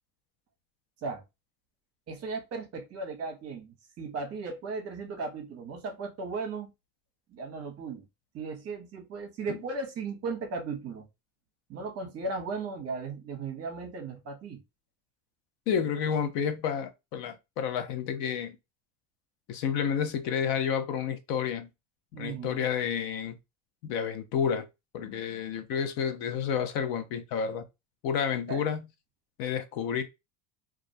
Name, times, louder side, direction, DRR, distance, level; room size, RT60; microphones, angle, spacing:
voice 1, 2.1-6.7 7.3-8.1 8.3-11.1 11.7-14.6 22.1-22.6 28.5-28.7, right 4 dB, 40° right, 0.7 m, -36 dB
voice 2, 15.7-18.6 19.5-21.7 22.2-23.4 23.8-24.7 24.9-27.6 28.0-28.8 29.4-30.0, left 7 dB, 65° left, 0.6 m, -30 dB
2.3 x 2.1 x 2.6 m
cardioid pair, 130°, 40 cm